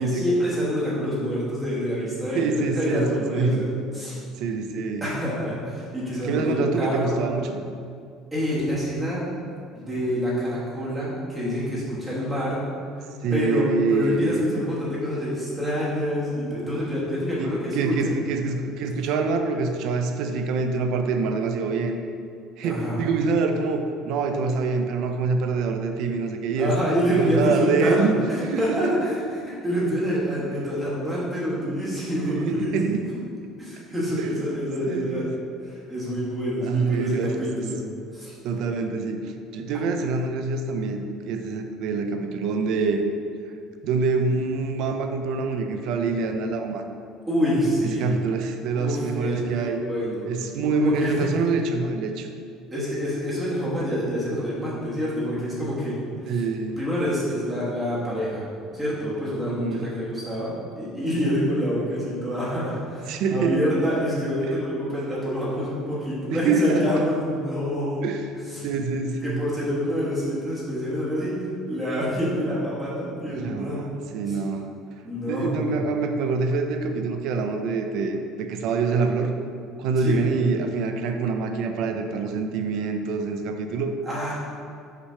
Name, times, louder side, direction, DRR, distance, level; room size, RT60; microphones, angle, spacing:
voice 1, 0.0-3.7 3.9-4.1 5.0-7.2 8.3-9.2 9.7-12.6 13.3-18.1 22.6-23.0 26.6-28.1 28.6-32.7 33.6-35.2 35.6-37.8 38.1-38.3 47.3-48.0 48.7-50.3 50.8-51.3 52.7-56.4 56.8-58.4 58.7-68.0 68.5-68.6 69.2-71.3 71.7-73.8 74.3-74.4 75.0-75.7 80.0-80.2 84.1-84.3, equal, 10° right, -8 dB, 1.2 m, -27 dB
voice 2, 2.3-3.6 4.4-5.1 6.2-7.6 13.2-14.4 17.4-22.0 22.6-26.7 27.2-28.2 28.5-29.0 32.2-33.1 34.2-34.3 34.9-35.3 36.6-37.7 38.4-43.1 43.8-46.9 48.0-49.8 50.3-52.3 56.3-56.8 59.4-59.9 63.1-63.6 66.3-67.0 68.0-68.2 68.6-69.4 73.3-74.7 75.3-79.3 79.8-83.9, right 4 dB, 55° right, 5 dB, 0.5 m, -25 dB
5.8 x 3.3 x 5.5 m, 2.3 s
cardioid pair, 170°, 0 cm